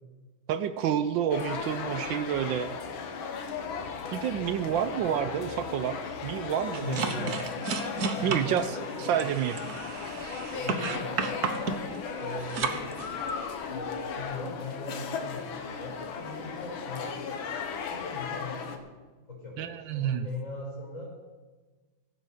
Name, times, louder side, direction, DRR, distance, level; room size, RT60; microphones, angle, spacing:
voice 1, 0.5-2.7 4.1-6.0 6.2-7.3 8.2-8.7 9.0-9.5 19.6-20.3, right 9 dB, 75° right, 9 dB, 1.3 m, -29 dB
sound 1, 1.3-18.8, left 5 dB, 85° left, 1.9 m, -36 dB
sound 2, 6.7-13.5, right 5 dB, 60° right, 1.3 m, -33 dB
voice 2, 6.8-7.7 8.1-9.2 10.5-13.0 13.7-17.2 17.9-18.9 19.3-21.1, left 2 dB, 40° left, -3 dB, 5.7 m, -39 dB
16.0 x 8.2 x 6.5 m, 1.3 s
omnidirectional pair, 2.1 m